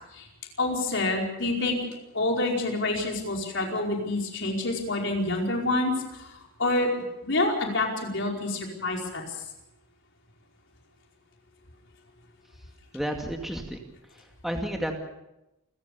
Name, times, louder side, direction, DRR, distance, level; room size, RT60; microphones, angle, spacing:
voice 1, 0.6-1.8 2.1-6.9 7.2-9.4, left 2 dB, 55° left, 1 dB, 4.9 m, -27 dB
voice 2, 12.9-13.8 14.1-14.9, equal, ahead, 2 dB, 2.2 m, -32 dB
29.0 x 15.5 x 6.9 m, 0.92 s
head